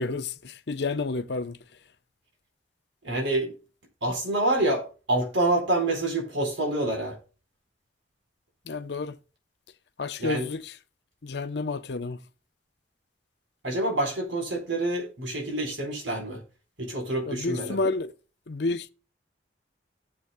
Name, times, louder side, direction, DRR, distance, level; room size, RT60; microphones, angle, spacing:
voice 1, 0.0-1.6 8.7-9.2 10.0-10.7 11.2-12.2 17.3-18.1 18.5-18.9, left 3 dB, 60° left, 0.7 m, -30 dB
voice 2, 3.0-3.5 4.0-7.1 10.2-10.5 13.6-16.4 16.8-17.8, right 2 dB, 90° right, 4.3 m, -27 dB
18.0 x 7.8 x 2.2 m
head